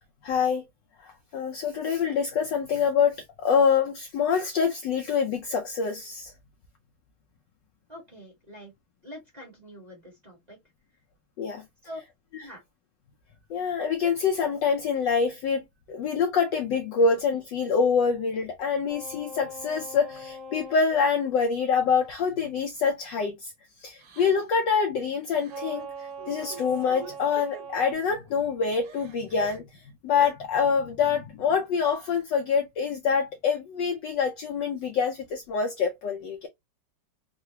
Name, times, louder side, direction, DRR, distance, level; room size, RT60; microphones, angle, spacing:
voice 1, 0.2-0.6 1.0-6.3 11.4-11.6 13.5-15.6 15.9-23.5 23.8-36.5, left 6 dB, 75° left, 1.0 m, -26 dB
voice 2, 7.9-8.7 9.0-10.6 11.8-12.0 12.4-12.6, left 1 dB, 25° right, 1.2 m, -44 dB
sound 1, 18.9-20.8 25.5-27.9, right 2 dB, 80° right, 0.6 m, -41 dB
Crying sobbing, 22.2-22.3 22.8-23.0 24.0-24.6 25.3-25.6 26.0-27.6 28.2-28.3 28.7-29.6 30.1-30.3 31.6-32.2, right 4 dB, 60° right, 1.2 m, -45 dB
3.8 x 2.4 x 2.7 m
omnidirectional pair, 2.4 m